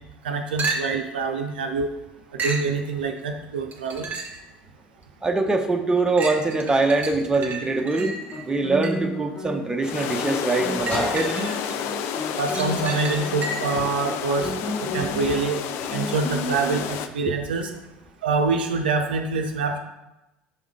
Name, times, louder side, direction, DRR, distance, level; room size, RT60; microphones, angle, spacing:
voice 1, 0.2-1.9 2.3-4.1 12.4-14.5 14.8-15.6 15.9-17.7 18.2-19.8, right 4 dB, 70° right, 4 dB, 0.5 m, -25 dB
sound 1, 0.6-1.1 2.4-2.7 3.7-4.5 5.0-5.1 6.2-9.2 10.5-11.7 12.1-13.8 17.6-17.7, right 3 dB, 30° right, 1.3 m, -32 dB
voice 2, 5.2-8.1 8.4-11.3, right 3 dB, 15° right, 4 dB, 0.7 m, -23 dB
Guitar, 7.4-16.9, equal, 30° left, 2.2 m, -33 dB
sound 2, 9.8-17.1, left 9 dB, 50° left, 0.4 m, -30 dB
6.3 x 3.6 x 4.7 m, 0.96 s
figure-of-eight pair, 65°, 5 cm